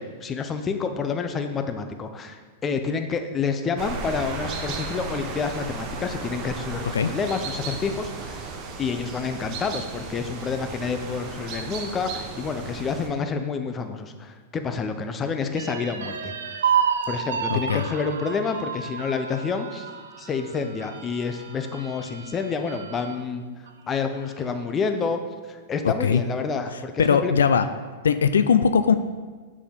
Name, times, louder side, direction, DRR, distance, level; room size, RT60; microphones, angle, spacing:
voice 1, 0.0-8.5 8.8-16.3 17.1-19.9 20.2-23.4 23.9-25.2 25.5-27.3, left 5 dB, 25° left, 7 dB, 0.7 m, -28 dB
sound 1, 3.8-13.1, right 4 dB, 40° right, 1.1 m, -35 dB
sound 2, 15.6-23.2 23.7-23.8 24.1-24.8, right 7 dB, 85° right, 0.6 m, -30 dB
voice 2, 17.5-17.8 25.8-26.2 27.0-27.7 28.0-29.0, left 6 dB, 90° left, 11 dB, 0.3 m, -20 dB
6.9 x 4.9 x 5.3 m, 1.4 s
hypercardioid pair, 120°, 0 cm